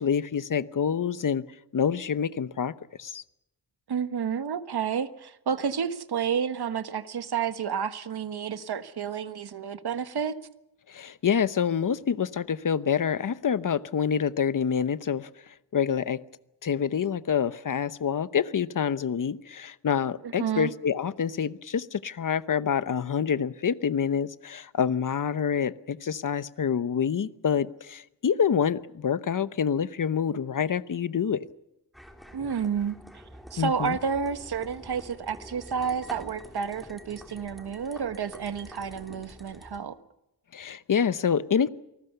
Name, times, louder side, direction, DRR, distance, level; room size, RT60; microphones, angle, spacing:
voice 1, 0.0-1.4 1.7-2.7 3.0-3.2 10.9-15.3 15.7-16.2 16.6-31.5 33.6-34.0 40.5-41.7, left 7 dB, 50° left, 14 dB, 0.9 m, -27 dB
voice 2, 3.9-10.4 20.2-20.7 32.3-33.0 33.5-40.0, right 7 dB, 65° right, 11 dB, 1.4 m, -30 dB
sound 1, 31.9-39.8, equal, ahead, 3.2 m, -47 dB
28.0 x 19.5 x 6.8 m, 0.86 s
wide cardioid pair, 140°, 42 cm